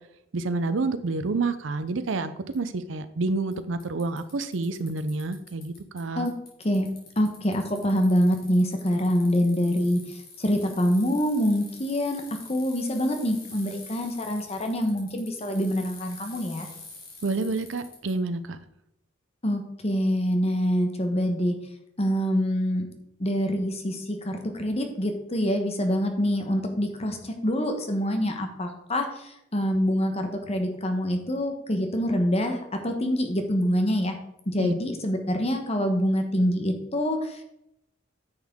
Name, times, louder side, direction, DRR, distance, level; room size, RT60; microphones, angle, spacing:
voice 1, 0.3-6.3 17.2-18.6 34.6-34.7, right 3 dB, 85° right, 11 dB, 0.6 m, -28 dB
Bicycle, 2.5-2.6 3.5-3.6 3.8-6.0 6.2-18.1, left 4 dB, 55° left, 2.6 m, -46 dB
voice 2, 7.2-12.2 12.5-16.7 19.4-21.5 22.0-22.9 23.2-34.2 34.5-37.4, equal, 35° left, 5 dB, 1.1 m, -25 dB
9.7 x 6.4 x 3.6 m, 0.79 s
head